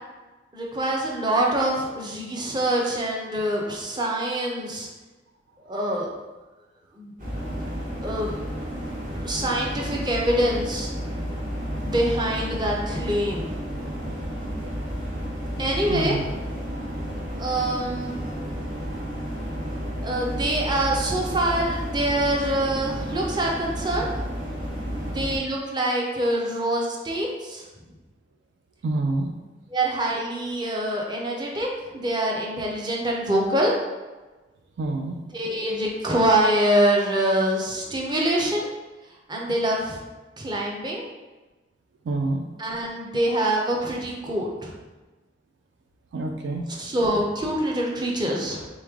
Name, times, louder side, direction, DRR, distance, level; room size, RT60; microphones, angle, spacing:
voice 1, 0.5-4.9 5.7-6.1 7.0-7.1 8.0-8.4 9.2-10.9 11.8-13.5 15.6-16.2 17.4-18.2 20.0-24.1 25.0-27.6 29.7-31.7 31.9-33.7 35.3-38.7 39.3-40.0 40.4-41.0 42.6-44.7 46.8-48.7, right 1 dB, 25° right, -2 dB, 0.6 m, -25 dB
sound 1, 7.2-25.4, equal, 45° right, 1.1 m, -31 dB
voice 2, 15.9-16.3 28.8-29.3 34.8-35.2 42.1-42.4 46.1-46.7, right 2 dB, 65° right, 3 dB, 0.4 m, -27 dB
3.5 x 3.2 x 3.6 m, 1.2 s
head